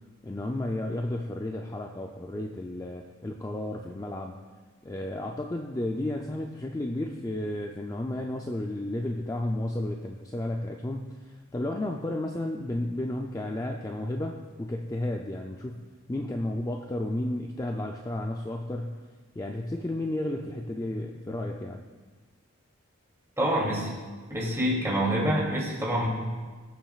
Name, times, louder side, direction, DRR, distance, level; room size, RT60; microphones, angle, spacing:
voice 1, 0.2-4.3 4.8-15.8 16.1-18.9 19.4-21.9, left 1 dB, 15° left, 2 dB, 0.4 m, -32 dB
voice 2, 23.4-23.9 24.3-26.1, equal, 15° right, -4 dB, 2.6 m, -26 dB
21.5 x 7.3 x 2.4 m, 1.4 s
head